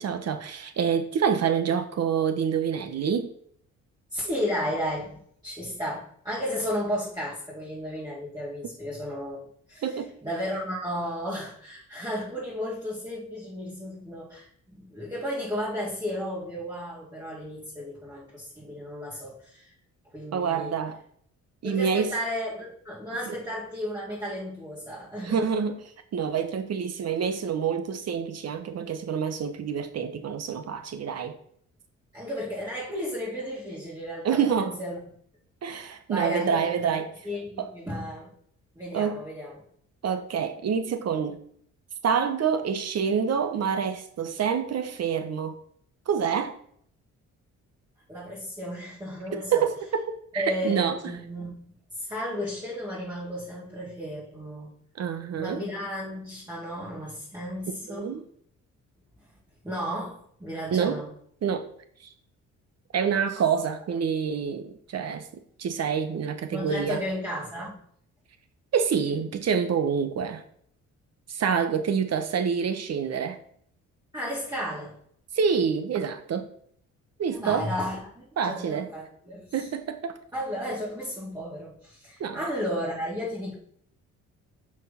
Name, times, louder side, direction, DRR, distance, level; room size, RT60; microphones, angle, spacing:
voice 1, 0.0-3.3 9.8-10.1 20.3-21.0 21.6-22.1 23.3-23.4 25.2-25.8 26.1-31.4 34.2-34.7 35.6-37.1 37.6-37.7 38.9-39.2 40.0-41.4 42.0-45.6 46.1-46.5 49.3-50.0 50.3-51.0 55.0-55.6 57.9-58.2 60.7-61.0 61.4-61.7 62.9-65.3 65.6-67.0 68.7-70.4 71.3-73.4 75.3-76.5 77.2-77.7 78.4-78.9 79.5-80.2 82.2-82.4, right 7 dB, 55° right, 1.3 m, -27 dB
voice 2, 4.1-19.7 20.1-20.7 21.6-25.4 32.1-35.0 35.7-35.8 36.1-36.9 37.2-38.3 38.8-39.5 48.1-49.7 50.3-51.5 51.9-54.7 55.4-58.1 59.6-61.1 66.5-67.8 74.1-75.0 77.3-79.7 80.3-83.5, equal, 15° right, 3.9 m, -33 dB
6.4 x 5.0 x 5.8 m
cardioid pair, 90°, 30 cm